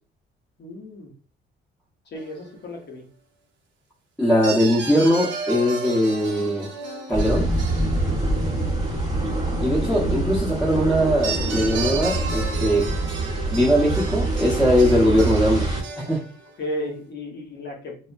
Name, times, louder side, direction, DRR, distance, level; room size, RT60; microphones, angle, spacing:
voice 1, 0.6-1.1 2.1-3.1 9.9-10.1 16.6-18.1, left 1 dB, 60° left, 1 dB, 0.8 m, -33 dB
sound 1, 2.2-2.6 4.4-8.8 11.2-16.5, right 4 dB, 75° right, 0.9 m, -34 dB
voice 2, 4.2-6.7 7.1-7.5 9.6-12.9 13.5-15.7 16.0-16.2, equal, 5° left, -7 dB, 0.9 m, -20 dB
sound 2, 7.1-15.8, right 2 dB, 20° right, 1.1 m, -25 dB
2.9 x 2.1 x 2.5 m, 0.39 s
cardioid pair, 90°, 20 cm